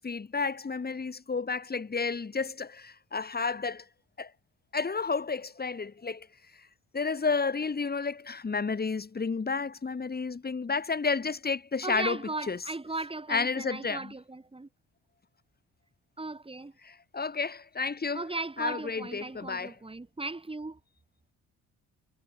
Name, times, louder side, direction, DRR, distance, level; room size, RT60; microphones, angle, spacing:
voice 1, 0.0-3.9 4.2-4.3 4.7-6.3 6.5-6.7 6.9-12.2 12.5-12.6 13.3-14.1 16.8-18.3 18.6-19.8, left 4 dB, 30° left, 5.9 m, -31 dB
voice 2, 11.8-14.7 16.2-16.7 18.1-20.8, right 2 dB, 20° right, 7.1 m, -37 dB
cardioid pair, 90°, 30 cm